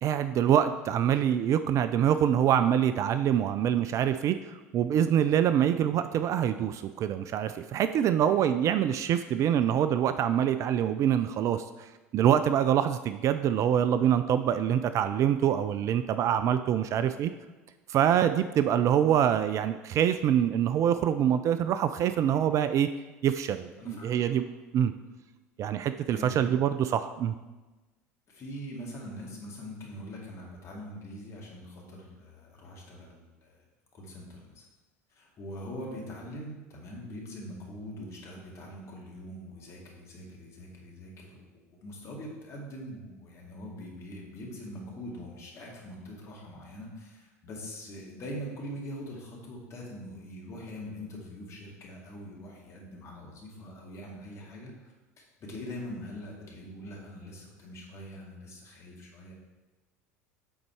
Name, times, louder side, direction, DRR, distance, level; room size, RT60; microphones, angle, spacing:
voice 1, 0.0-17.3 17.9-22.9 23.2-24.4 24.7-24.9 25.6-27.3, right 9 dB, 40° right, 11 dB, 0.3 m, -25 dB
voice 2, 26.1-26.4 28.3-33.6 33.9-34.6 35.1-41.4 41.7-59.3, equal, 35° left, -2 dB, 2.2 m, -43 dB
8.6 x 4.0 x 4.6 m, 1.2 s
figure-of-eight pair, 70°, 8 cm